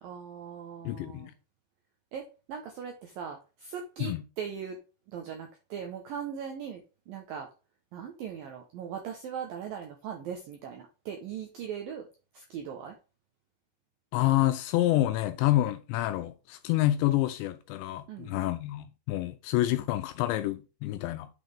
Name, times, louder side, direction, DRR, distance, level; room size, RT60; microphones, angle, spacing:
voice 1, 0.0-1.3 2.1-4.8 5.1-7.5 7.9-12.1 12.3-13.0 18.1-18.4, right 7 dB, 80° right, 2.0 m, -39 dB
voice 2, 0.9-1.3 4.0-4.2 14.1-21.3, left 15 dB, 85° left, 2.6 m, -28 dB
8.9 x 6.2 x 3.4 m
omnidirectional pair, 5.5 m